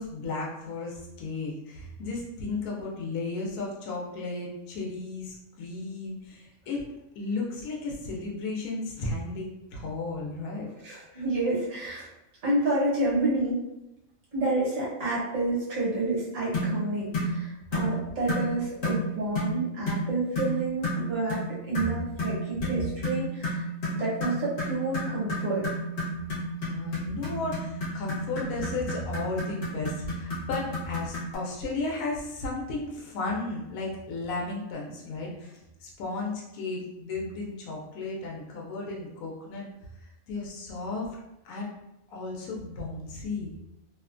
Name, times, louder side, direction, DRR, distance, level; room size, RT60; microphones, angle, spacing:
voice 1, 0.0-6.8 7.2-10.7 11.1-11.2 26.6-39.7 40.0-41.1 41.4-41.7 42.1-43.5, left 3 dB, 85° left, -3 dB, 1.0 m, -34 dB
voice 2, 10.8-12.1 12.4-13.6 14.3-23.7 23.9-25.7, right 2 dB, 70° right, -6 dB, 1.3 m, -29 dB
sound 1, 16.5-16.8 17.1-17.3 17.7-17.9 18.3-18.5 18.8-19.0 19.4-19.6 19.9-20.1 20.4-20.5 20.8-21.0 21.3-21.5 21.7-31.4, left 1 dB, 55° left, 1.0 m, -31 dB
2.8 x 2.1 x 2.4 m, 0.91 s
omnidirectional pair, 1.4 m